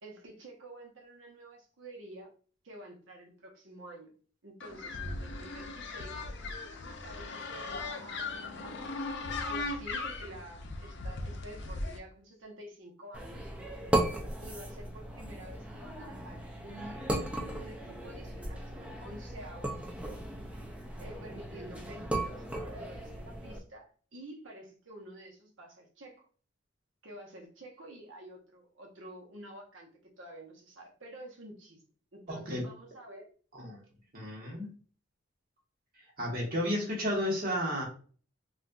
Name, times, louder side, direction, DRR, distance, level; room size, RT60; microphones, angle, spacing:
voice 1, 0.0-2.3 2.6-4.1 4.4-6.2 7.0-8.8 9.2-13.5 14.4-17.0 17.5-20.2 21.0-26.2 27.0-29.9 30.2-31.8 32.1-33.3, right 1 dB, 75° right, 1 dB, 0.9 m, -49 dB
sound 1, 4.6-12.0, left 3 dB, 60° left, 0.5 m, -38 dB
sound 2, 13.1-23.6, right 1 dB, 5° right, 0.4 m, -36 dB
voice 2, 32.3-32.7 33.5-33.8 34.1-34.8 36.2-37.8, equal, 50° right, -2 dB, 1.2 m, -32 dB
3.9 x 2.5 x 2.2 m, 0.41 s
head